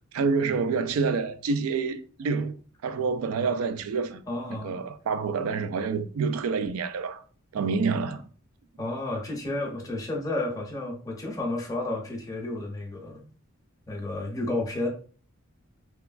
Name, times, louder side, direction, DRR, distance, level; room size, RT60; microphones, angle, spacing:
voice 1, 0.1-2.5 2.8-4.2 4.5-7.2 7.5-8.2, right 5 dB, 90° right, 0.3 m, -27 dB
voice 2, 4.3-4.8 8.8-13.2 13.9-14.9, left 2 dB, 15° left, 0.6 m, -31 dB
3.0 x 2.3 x 2.4 m
head